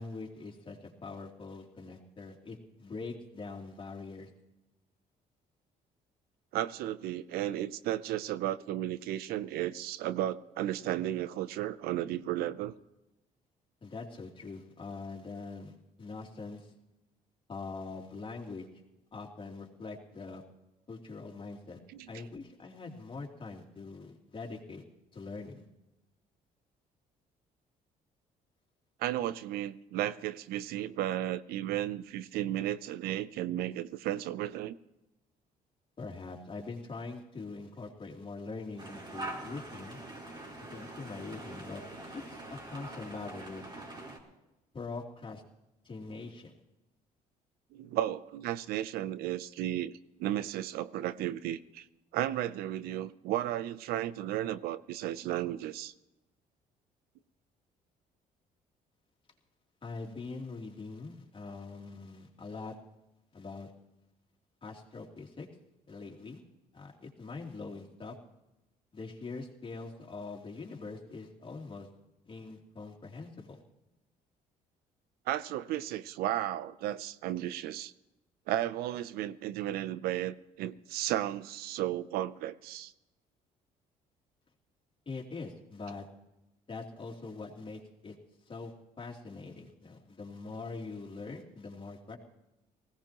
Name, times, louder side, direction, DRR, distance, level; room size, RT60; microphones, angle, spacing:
voice 1, 0.0-4.3 13.8-16.7 17.5-18.7 19.1-20.4 20.9-21.8 22.1-24.8 25.1-25.6 36.0-40.0 40.7-41.8 42.1-43.7 44.7-45.4 45.8-46.5 59.8-62.7 63.3-63.7 64.6-65.5 65.9-66.4 66.7-68.2 68.9-71.9 72.3-73.6 85.1-86.1 86.7-88.1 88.5-92.2, left 3 dB, 35° left, -1 dB, 3.0 m, -43 dB
voice 2, 6.5-12.7 21.9-22.1 29.0-34.8 47.7-49.9 50.2-51.9 52.1-55.9 75.3-77.9 78.5-82.9, right 13 dB, 85° right, 16 dB, 0.6 m, -34 dB
sound 1, 38.8-44.2, right 2 dB, 30° right, 4.0 m, -44 dB
19.5 x 17.0 x 3.0 m, 0.97 s
cardioid pair, 90°, 16 cm